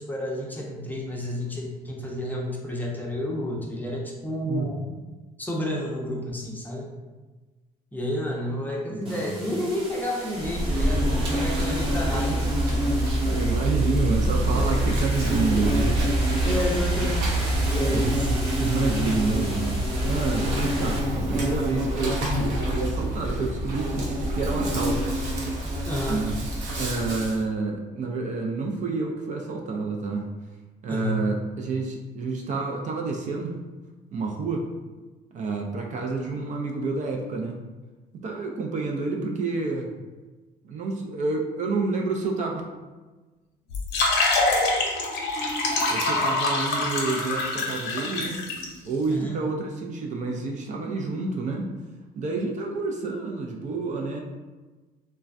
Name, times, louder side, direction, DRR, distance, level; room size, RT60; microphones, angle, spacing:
voice 1, 0.0-4.9 5.4-6.9 7.9-12.6 16.4-18.3 25.9-26.3 30.9-31.3 49.1-49.4, left 1 dB, 10° left, -2 dB, 0.5 m, -31 dB
voice 2, 8.9-9.4 13.2-15.9 17.0-17.1 17.9-18.1 18.6-25.0 26.1-26.4 26.8-30.2 30.8-33.5 34.1-34.6 35.3-37.6 38.2-39.9 40.6-42.6 45.9-48.4 48.8-51.7 52.2-54.2, right 3 dB, 45° right, 1 dB, 0.4 m, -29 dB
sound 1, 9.0-21.0, right 1 dB, 30° right, 0.9 m, -37 dB
Insect, 10.4-27.4, right 1 dB, 85° right, 0.8 m, -25 dB
sound 2, 43.7-48.6, left 2 dB, 85° left, 0.6 m, -25 dB
3.2 x 2.1 x 2.5 m, 1.2 s
cardioid pair, 110°, 17 cm